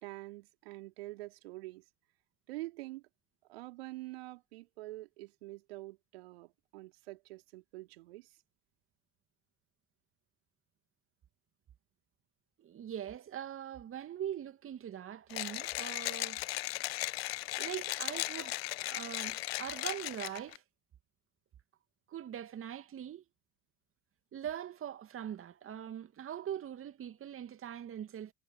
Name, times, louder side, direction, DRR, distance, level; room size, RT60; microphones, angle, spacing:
voice 1, 0.0-1.8 2.5-3.0 3.4-8.4, right 19 dB, 75° right, 3.4 m, -46 dB
voice 2, 12.6-16.4 17.6-20.6 22.1-23.2 24.3-28.3, right 10 dB, 45° right, 2.6 m, -42 dB
Mechanisms, 15.3-20.6, left 18 dB, 75° left, 1.1 m, -37 dB
hypercardioid pair, 60°, 31 cm